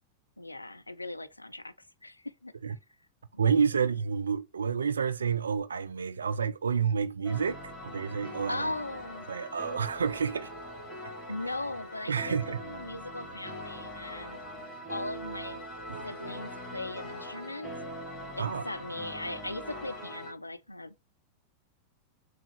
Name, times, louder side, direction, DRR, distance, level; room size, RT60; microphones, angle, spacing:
voice 1, 0.4-1.7 2.0-2.5 3.3-3.5 8.5-9.3 11.3-14.4 14.9-15.6 16.0-17.7 18.4-20.9, left 2 dB, 85° left, 0.4 m, -38 dB
voice 2, 3.4-8.7 9.3-10.5 12.1-12.6 15.9-16.0 18.4-18.6, right 6 dB, 70° right, 0.4 m, -29 dB
sound 1, 7.2-20.3, equal, 20° left, 1.7 m, -42 dB
3.4 x 2.4 x 3.3 m
figure-of-eight pair, 90°, 0 cm